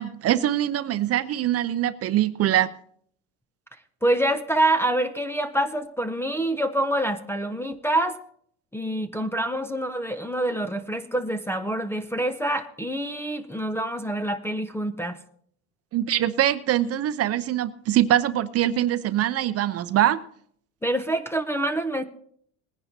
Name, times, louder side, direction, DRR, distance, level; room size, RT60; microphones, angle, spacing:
voice 1, 0.0-2.7 15.9-20.2, right 12 dB, 35° right, 0.6 m, -23 dB
voice 2, 4.0-8.2 8.7-15.2 20.8-22.0, right 1 dB, 5° left, 0.5 m, -26 dB
20.5 x 10.0 x 2.7 m
supercardioid pair, 125°, 41 cm